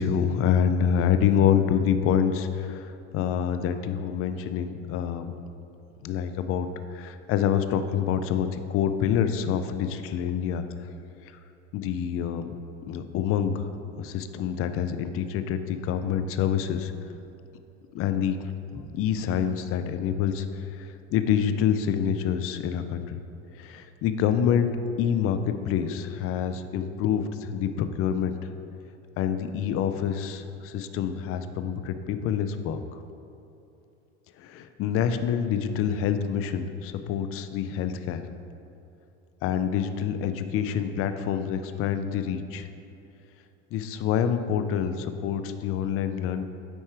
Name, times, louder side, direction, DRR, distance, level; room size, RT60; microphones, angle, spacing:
voice 1, 0.0-5.3 6.0-6.7 6.9-10.6 11.7-12.5 12.9-13.7 14.0-16.9 17.9-18.4 18.9-23.2 23.6-24.7 25.0-28.4 29.2-32.8 34.4-38.2 39.4-42.7 43.7-46.4, left 8 dB, 40° left, 9 dB, 0.5 m, -26 dB
Walk footsteps, 16.1-20.4, left 1 dB, 15° left, 0.8 m, -49 dB
9.3 x 4.2 x 3.3 m, 2.7 s
hypercardioid pair, 95°, 34 cm